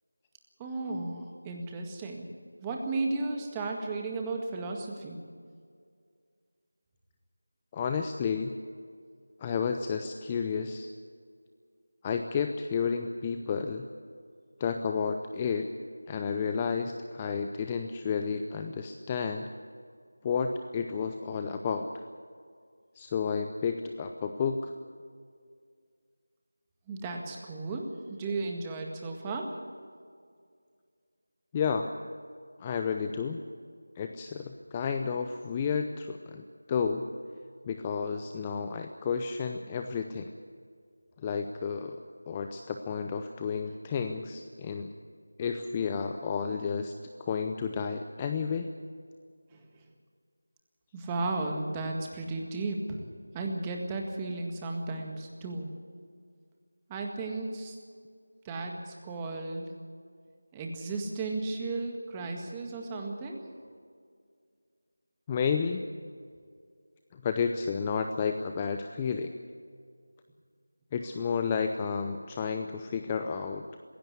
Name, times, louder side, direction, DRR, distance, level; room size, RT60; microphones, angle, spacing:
voice 1, 0.6-2.3 2.6-5.2 26.9-29.5 49.5-49.6 50.9-53.0 53.3-55.7 56.9-57.8 58.4-59.7 60.5-63.5, right 3 dB, 10° right, 2 dB, 1.8 m, -34 dB
voice 2, 7.7-8.6 9.4-10.9 12.0-13.9 14.6-15.7 16.1-19.5 20.2-21.9 22.9-24.7 31.5-31.9 32.6-33.4 34.0-36.4 36.7-37.1 37.6-40.3 41.2-44.9 45.4-46.9 47.2-48.7 65.3-65.8 67.1-69.3 70.9-73.6, left 6 dB, 15° left, 6 dB, 0.6 m, -31 dB
21.5 x 16.5 x 8.2 m, 2.1 s
figure-of-eight pair, 170°, 0 cm